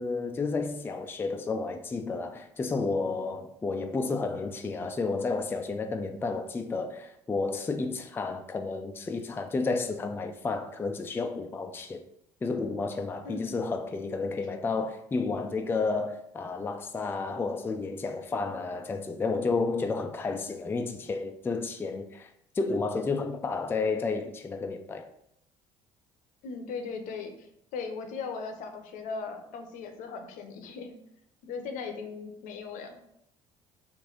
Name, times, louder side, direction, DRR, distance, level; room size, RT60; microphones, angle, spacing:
voice 1, 0.0-12.0 12.4-25.1, left 3 dB, 15° left, 0.3 m, -31 dB
voice 2, 13.2-13.6 26.4-30.9 31.4-33.0, left 4 dB, 70° left, 0.7 m, -38 dB
3.2 x 2.5 x 3.8 m
supercardioid pair, 75°, 14 cm